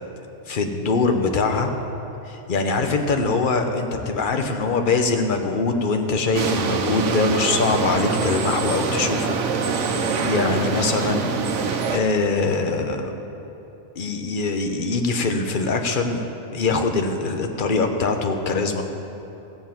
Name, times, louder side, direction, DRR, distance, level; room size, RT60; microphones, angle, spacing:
voice 1, 0.5-1.7 2.3-9.4 10.2-11.3 11.9-13.1 14.0-16.2 16.5-18.8, left 3 dB, 45° left, 5 dB, 1.0 m, -23 dB
sound 1, 6.3-12.0, right 5 dB, 80° right, 1.1 m, -24 dB
17.0 x 7.3 x 5.8 m, 3.0 s
omnidirectional pair, 1.2 m